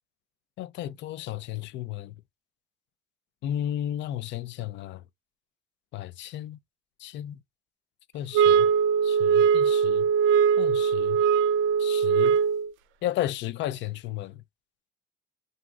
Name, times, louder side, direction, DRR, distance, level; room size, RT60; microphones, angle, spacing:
voice 1, 0.6-2.1 3.4-5.0 5.9-6.6 7.0-7.4 8.1-8.7 9.0-10.1 10.6-11.2 11.8-12.4 13.0-14.4, left 12 dB, 70° left, 0.4 m, -33 dB
sound 1, 8.3-12.7, right 7 dB, 85° right, 0.4 m, -21 dB
2.6 x 2.3 x 3.1 m
supercardioid pair, 75°, 19 cm